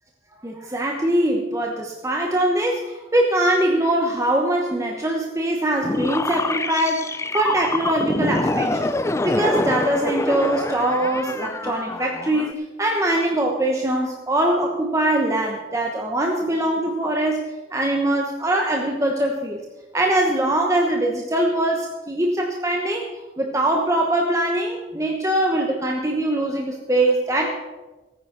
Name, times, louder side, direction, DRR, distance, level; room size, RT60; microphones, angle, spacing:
voice 1, 0.4-8.9 9.2-17.4 17.7-19.6 19.9-23.1 23.4-27.5, right 1 dB, 15° right, 1 dB, 1.1 m, -22 dB
sound 1, 5.8-12.5, left 2 dB, 15° left, 0.5 m, -25 dB
16.5 x 9.4 x 6.1 m, 1.2 s
head